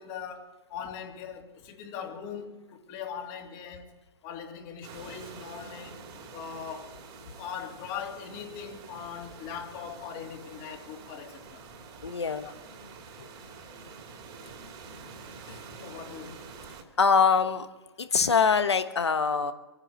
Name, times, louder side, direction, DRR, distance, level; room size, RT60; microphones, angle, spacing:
voice 1, 0.0-7.0 7.3-11.6 12.4-12.5 15.8-16.4, left 7 dB, 35° left, 2.8 m, -41 dB
sound 1, 4.8-16.8, right 4 dB, 35° right, 2.7 m, -47 dB
voice 2, 12.0-12.5 13.2-13.3 15.5-15.6 17.0-17.7 18.0-19.5, left 5 dB, 80° left, 1.2 m, -24 dB
24.0 x 9.7 x 5.8 m
hypercardioid pair, 120°, 14 cm